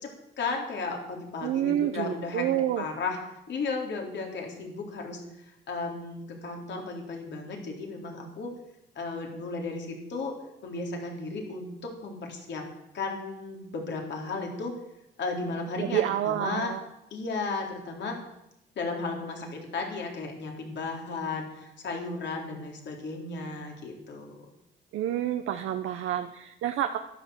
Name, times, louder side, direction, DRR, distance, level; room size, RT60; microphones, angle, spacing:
voice 1, 0.0-2.5 2.8-5.2 5.7-8.5 9.0-10.3 10.6-12.7 12.9-14.7 15.2-16.7 17.1-18.2 18.8-24.4, left 3 dB, 65° left, 1 dB, 3.8 m, -34 dB
voice 2, 1.4-2.8 15.8-16.8 24.9-27.0, right 11 dB, 85° right, 6 dB, 0.9 m, -28 dB
12.0 x 11.0 x 7.9 m, 0.85 s
cardioid pair, 90°, 20 cm